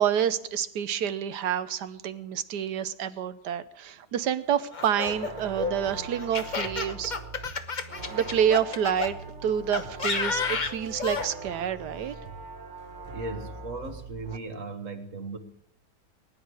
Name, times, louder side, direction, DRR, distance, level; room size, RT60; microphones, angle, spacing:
voice 1, 0.0-7.1 8.1-9.2 9.4-12.1, right 9 dB, 80° right, 13 dB, 1.4 m, -28 dB
Laughter, 4.7-9.1 9.7-11.3, left 5 dB, 35° left, 0.9 m, -31 dB
sound 1, 4.9-14.4, right 3 dB, 35° right, 1.1 m, -41 dB
voice 2, 13.1-15.4, right 3 dB, 50° right, 7 dB, 1.8 m, -37 dB
20.0 x 10.5 x 4.8 m, 0.74 s
omnidirectional pair, 1.8 m